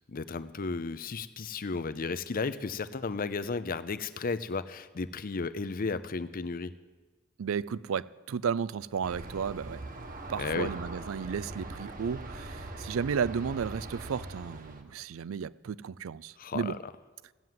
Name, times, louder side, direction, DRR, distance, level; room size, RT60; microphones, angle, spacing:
voice 1, 0.1-6.7 10.4-10.7 16.4-16.8, left 4 dB, 45° left, 0.6 m, -34 dB
voice 2, 7.4-9.8 10.3-16.8, right 6 dB, 80° right, 0.4 m, -33 dB
Aircraft, 9.0-14.8, right 2 dB, 45° right, 1.3 m, -41 dB
15.0 x 9.3 x 7.6 m
head